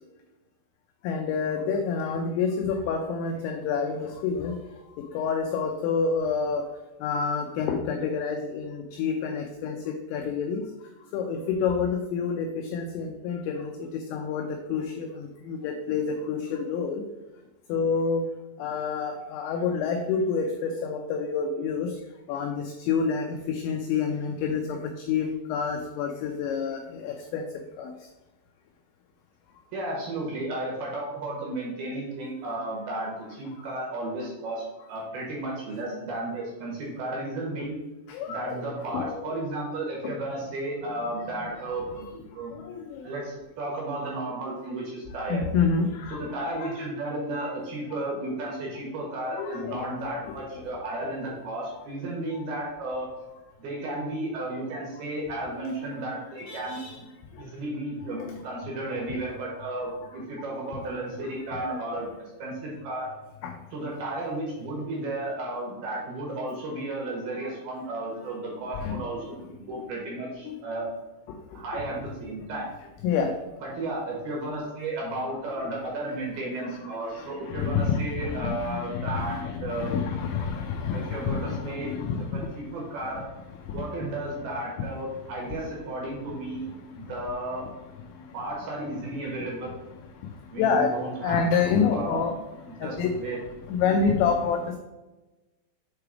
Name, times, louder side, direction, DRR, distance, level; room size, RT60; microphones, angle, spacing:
voice 1, 1.0-4.6 5.0-6.7 7.0-10.6 11.1-17.0 17.7-18.3 18.6-22.0 22.3-27.5 27.8-27.9 38.1-39.3 40.0-40.2 41.9-42.0 42.5-43.0 45.3-46.3 46.6-46.8 49.3-50.3 52.3-52.4 55.6-56.0 56.5-57.0 58.2-58.3 58.9-59.0 61.2-61.8 63.4-63.5 68.8-69.1 70.4-70.6 71.7-71.8 73.0-73.4 77.0-82.4 83.7-83.8 90.6-90.9 91.2-92.4 92.8-93.2 93.7-94.8, left 5 dB, 90° left, 4 dB, 2.5 m, -28 dB
voice 2, 29.7-37.8 38.3-42.6 43.0-45.4 46.2-53.1 53.6-57.1 57.4-62.1 62.4-63.1 63.7-70.9 71.5-72.7 73.6-79.9 80.9-81.9 82.3-83.2 83.7-87.7 88.3-89.8 90.5-92.2 92.7-93.4, right 2 dB, 65° right, -3 dB, 2.6 m, -33 dB
7.5 x 3.3 x 4.8 m, 1.1 s
omnidirectional pair, 5.7 m